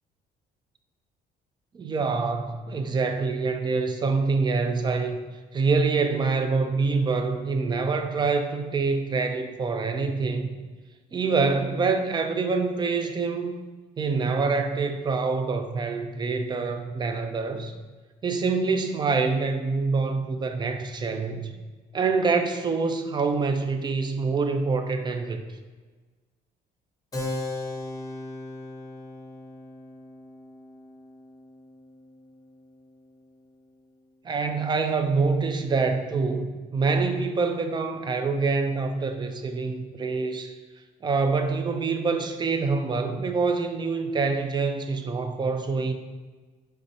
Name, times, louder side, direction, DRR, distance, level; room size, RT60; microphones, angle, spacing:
voice 1, 1.7-10.5 11.1-13.5 14.0-17.7 18.2-21.5 21.9-25.4 34.2-40.6 41.0-45.9, right 4 dB, 25° right, 7 dB, 0.4 m, -26 dB
Keyboard (musical), 27.1-33.2, left 2 dB, 20° left, 0.7 m, -38 dB
4.8 x 3.2 x 2.7 m, 1.3 s
cardioid pair, 110°, 17 cm